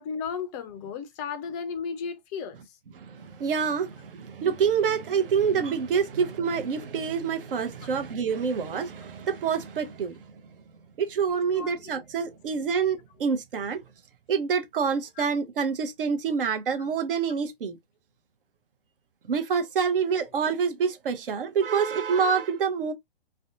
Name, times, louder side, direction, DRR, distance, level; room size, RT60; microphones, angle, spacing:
voice 1, 0.0-2.6 7.8-7.9 11.5-11.9 15.2-15.3 17.3-17.4, left 6 dB, 20° left, 0.3 m, -35 dB
voice 2, 3.0-10.3 11.0-13.8 14.3-17.8 19.3-22.9, right 6 dB, 65° right, 0.7 m, -27 dB
2.6 x 2.2 x 2.5 m
hypercardioid pair, 120°, 29 cm